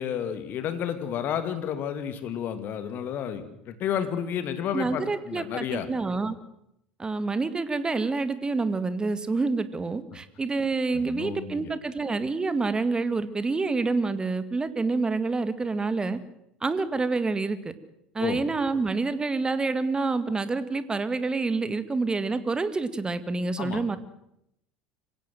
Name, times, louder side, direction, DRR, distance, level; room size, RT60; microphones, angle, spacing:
voice 1, 0.0-5.9 10.9-11.7 18.2-18.4 23.6-23.8, left 9 dB, 45° left, 10 dB, 2.7 m, -31 dB
voice 2, 4.7-6.4 7.0-16.2 16.6-17.7 18.1-24.0, right 3 dB, 20° right, 13 dB, 2.0 m, -27 dB
25.0 x 17.0 x 7.8 m, 0.80 s
figure-of-eight pair, 65°, 4 cm